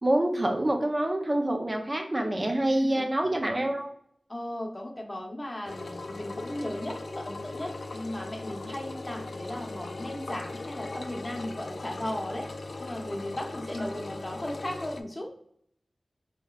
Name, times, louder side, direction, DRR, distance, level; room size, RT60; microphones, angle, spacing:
voice 1, 0.0-3.9 13.9-14.0, right 1 dB, 35° right, 2 dB, 0.6 m, -26 dB
voice 2, 2.6-3.1 4.3-12.5 12.8-15.3, left 1 dB, 30° left, 1 dB, 0.9 m, -36 dB
Engine, 5.6-15.0, left 2 dB, 75° left, 0.4 m, -39 dB
5.0 x 3.1 x 2.4 m, 0.68 s
wide cardioid pair, 60°, 0 cm